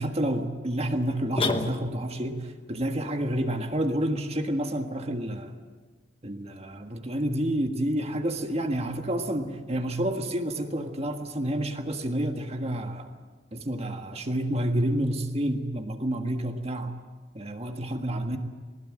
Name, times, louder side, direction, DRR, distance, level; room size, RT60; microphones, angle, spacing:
voice 1, 0.0-5.6 6.2-13.1 13.5-17.0 17.3-18.4, right 1 dB, 35° right, 5 dB, 1.6 m, -29 dB
sound 1, 1.4-2.3, left 3 dB, 30° left, 1.1 m, -29 dB
20.0 x 20.0 x 8.8 m, 1.4 s
head